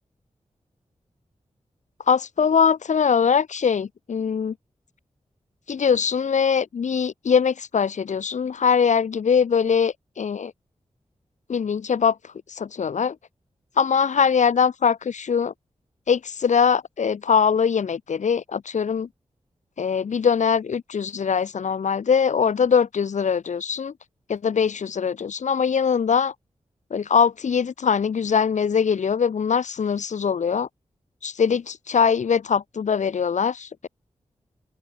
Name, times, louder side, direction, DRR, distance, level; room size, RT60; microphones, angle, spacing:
voice 1, 2.1-4.5 5.7-10.5 11.5-12.2 12.5-13.2 13.8-15.5 16.1-19.1 19.8-23.9 24.3-26.3 26.9-30.7 31.2-33.9, left 6 dB, 80° left, 1.5 m, -22 dB
open air
wide cardioid pair, 150°, 12 cm